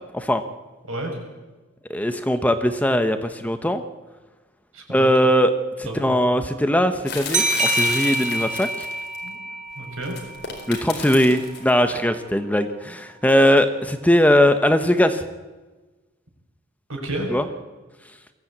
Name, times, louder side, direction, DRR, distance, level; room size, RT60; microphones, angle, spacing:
voice 1, 1.9-3.8 4.9-5.5 5.8-8.9 10.7-15.2 17.3-17.4, equal, 5° left, 8 dB, 0.9 m, -20 dB
voice 2, 4.7-5.1 5.8-6.2 9.2-9.4 9.8-10.2 16.9-17.3, right 1 dB, 75° right, 1 dB, 6.3 m, -31 dB
sound 1, 7.1-9.2 10.0-11.7, left 5 dB, 55° left, 4.5 m, -32 dB
sound 2, 7.3-10.7, right 2 dB, 35° right, 1.6 m, -26 dB
22.0 x 15.5 x 8.6 m, 1.2 s
head